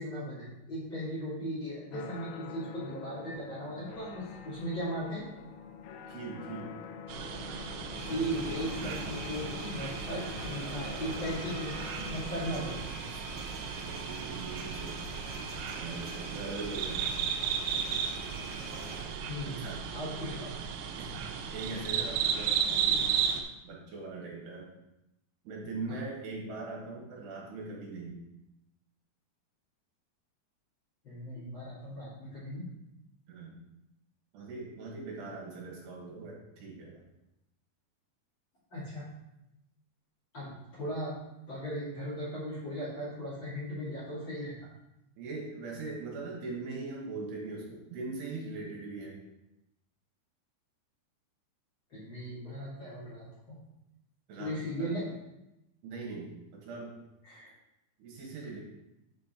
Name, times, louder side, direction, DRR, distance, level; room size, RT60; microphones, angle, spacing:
voice 1, 0.0-5.2 8.1-12.9 17.4-17.5 19.3-20.5 25.9-26.0 31.0-32.7 38.7-39.1 40.3-41.2 41.5-44.5 51.9-53.6 54.4-55.1 57.2-57.5, equal, 35° left, -9 dB, 2.3 m, -37 dB
sound 1, 1.9-12.8, left 6 dB, 90° left, 2.2 m, -45 dB
voice 2, 6.1-6.8 10.6-11.3 13.1-15.0 15.7-17.1 19.5-19.8 21.0-21.1 21.5-23.1 23.6-24.7 25.5-28.2 33.3-33.6 34.3-37.0 45.2-49.2 54.3-55.0 55.8-57.0 58.0-58.6, right 3 dB, 70° right, -3 dB, 3.5 m, -41 dB
sound 2, 7.1-23.4, right 7 dB, 85° right, 3.1 m, -35 dB
sound 3, 7.9-19.0, right 1 dB, 45° right, 2.8 m, -45 dB
8.8 x 4.4 x 4.3 m, 0.90 s
omnidirectional pair, 5.2 m